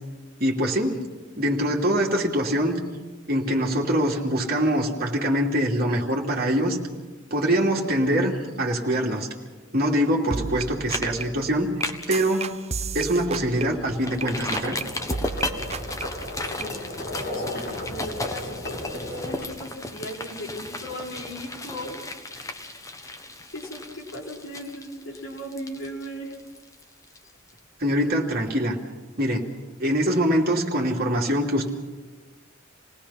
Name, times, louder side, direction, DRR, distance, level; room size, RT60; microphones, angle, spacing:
voice 1, 0.4-1.0 1.4-2.8 3.3-6.8 7.3-9.3 9.7-11.7 12.1-12.5 12.9-14.8 27.8-28.8 29.2-29.5 29.8-31.7, equal, 50° right, -1 dB, 2.8 m, -23 dB
sound 1, 10.0-10.1 10.3-14.2 14.5-14.8 15.1-16.7, right 4 dB, 30° right, 0.6 m, -34 dB
sound 2, 10.4-10.6 10.9-11.1 11.4-12.2 12.6-12.7 13.1-13.2 14.0-27.6 27.9-28.0, left 2 dB, 15° left, 1.2 m, -35 dB
Livestock farm animals working animals, 13.7-19.4, left 1 dB, 50° left, 5.6 m, -35 dB
voice 2, 16.4-16.9 17.3-22.0 22.3-26.4, equal, 70° left, -6 dB, 5.4 m, -38 dB
28.0 x 19.0 x 5.8 m, 1.3 s
head